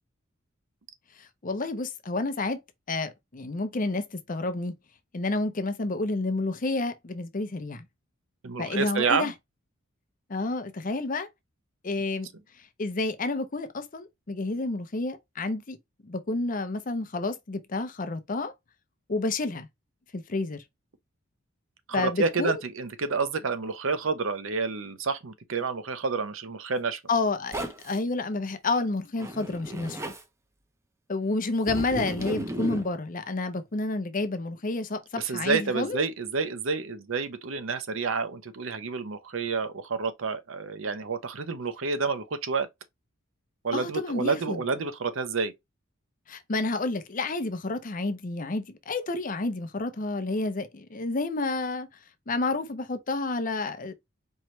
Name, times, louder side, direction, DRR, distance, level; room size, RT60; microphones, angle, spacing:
voice 1, 1.2-2.6 2.9-4.7 5.1-7.8 8.6-9.3 10.3-11.3 11.8-12.3 12.8-15.8 16.0-18.5 19.1-19.7 20.1-20.6 21.9-22.6 27.1-30.1 31.1-36.0 43.7-44.6 46.3-51.9 52.3-53.9, left 3 dB, 40° left, 0.7 m, -30 dB
voice 2, 8.4-9.3 21.9-27.0 35.2-42.7 43.6-45.5, right 4 dB, 70° right, 0.7 m, -29 dB
Zipper (clothing), 27.5-28.0 29.2-30.2 31.6-32.9, right 1 dB, 15° right, 0.6 m, -34 dB
4.5 x 3.1 x 3.1 m
head